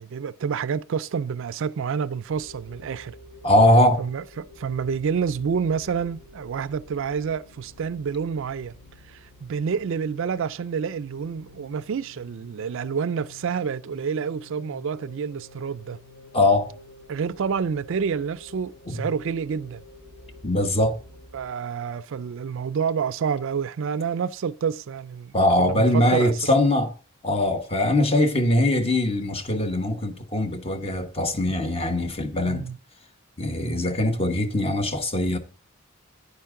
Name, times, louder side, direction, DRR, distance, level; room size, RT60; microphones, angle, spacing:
voice 1, 0.0-3.2 4.0-8.8 9.1-16.0 17.1-19.8 21.3-25.3 25.6-26.3 32.5-32.8, right 6 dB, 65° right, 0.4 m, -28 dB
sound 1, 2.2-21.5, left 2 dB, 75° left, 4.0 m, -49 dB
voice 2, 3.4-4.0 16.3-16.7 18.9-19.1 20.4-21.0 25.3-26.9 27.2-32.7 33.4-35.4, left 1 dB, 30° left, 1.2 m, -21 dB
10.0 x 9.9 x 3.7 m
head